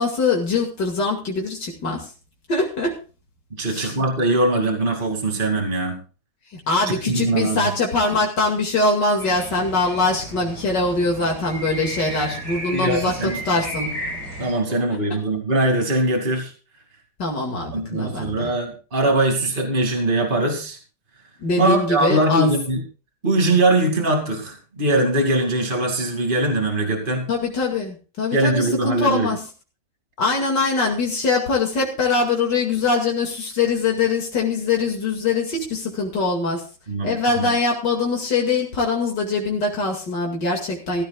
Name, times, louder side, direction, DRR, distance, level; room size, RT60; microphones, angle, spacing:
voice 1, 0.0-2.1 2.5-3.0 3.6-3.9 6.5-13.9 17.2-18.5 21.4-22.5 27.3-29.5 30.2-36.6 37.0-41.0, left 3 dB, 80° left, 0 dB, 3.0 m, -22 dB
voice 2, 3.6-6.0 6.9-7.6 12.7-13.4 14.4-16.5 17.7-20.8 21.6-22.8 23.2-27.3 28.3-29.3 36.9-37.5, right 2 dB, 30° right, 3 dB, 2.7 m, -21 dB
sound 1, 9.2-14.5, right 1 dB, 65° right, 6.2 m, -33 dB
18.5 x 14.0 x 2.4 m, 0.34 s
omnidirectional pair, 1.9 m